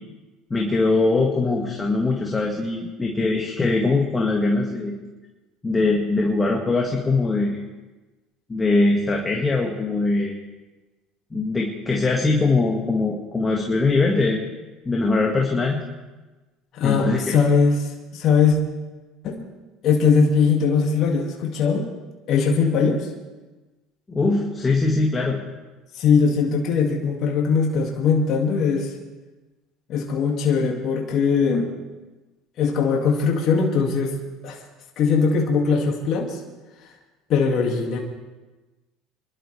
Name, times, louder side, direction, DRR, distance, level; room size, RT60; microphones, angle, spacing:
voice 1, 0.5-4.9 5.6-7.6 8.5-10.4 11.3-14.4 14.8-15.8 16.8-17.4 24.1-25.4, left 3 dB, 20° left, -1 dB, 2.0 m, -21 dB
voice 2, 16.7-18.6 19.2-19.4 19.8-21.9 22.3-23.1 25.9-28.9 29.9-31.7 32.6-34.2 34.4-34.6 35.0-36.4 37.3-38.0, left 5 dB, 55° left, 0 dB, 2.3 m, -20 dB
25.5 x 12.0 x 3.4 m, 1.2 s
supercardioid pair, 90°, 0 cm